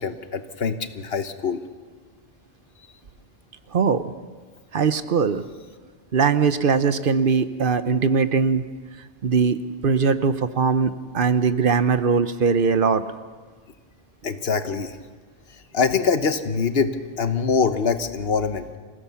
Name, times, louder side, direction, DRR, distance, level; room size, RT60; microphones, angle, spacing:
voice 1, 0.0-1.6 14.2-14.9 15.7-18.7, left 5 dB, 70° left, 10 dB, 1.3 m, -24 dB
voice 2, 3.7-4.0 4.7-5.4 6.1-8.6 9.2-9.6 9.8-13.0, right 5 dB, 60° right, 12 dB, 1.0 m, -20 dB
26.0 x 16.5 x 7.0 m, 1.5 s
omnidirectional pair, 1.1 m